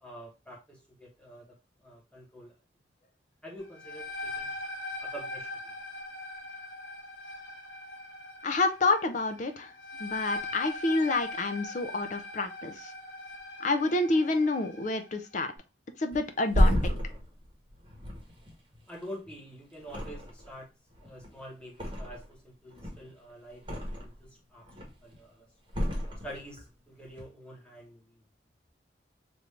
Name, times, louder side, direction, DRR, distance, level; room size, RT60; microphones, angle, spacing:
voice 1, 0.0-1.4 1.8-2.5 3.4-4.6 5.0-5.6 18.9-20.7 21.0-24.6 25.0-25.4 26.2-28.0, equal, 5° left, -3 dB, 1.0 m, -46 dB
sound 1, 3.6-15.1, left 2 dB, 75° left, 1.0 m, -41 dB
voice 2, 8.4-9.7 10.0-12.9 13.6-15.5 16.0-17.0, left 2 dB, 40° left, 8 dB, 0.4 m, -28 dB
Thump thud, 16.1-19.4 19.8-20.6 20.9-22.4 22.7-24.2 24.6-25.1 25.7-26.7 27.0-27.2, equal, 25° right, 1.0 m, -31 dB
3.4 x 2.5 x 3.2 m, 0.28 s
head